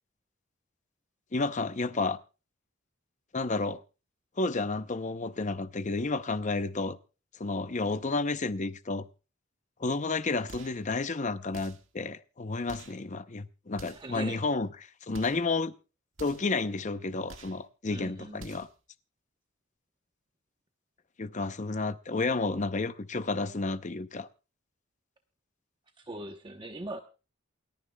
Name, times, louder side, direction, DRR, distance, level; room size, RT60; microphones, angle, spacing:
voice 1, 1.3-2.2 3.3-3.8 4.4-7.0 7.4-9.1 9.8-14.7 15.1-15.7 16.2-18.7 21.2-24.3, left 3 dB, 35° left, 0.6 m, -31 dB
sound 1, 10.5-10.9 11.5-11.9 12.7-13.0 13.7-14.2 15.1-15.5 16.1-16.6 17.3-17.6 18.3-18.8, right 3 dB, 70° right, 1.7 m, -49 dB
voice 2, 13.9-14.4 17.9-18.4 26.0-27.0, right 2 dB, 25° right, 0.9 m, -40 dB
28.5 x 9.8 x 2.2 m
head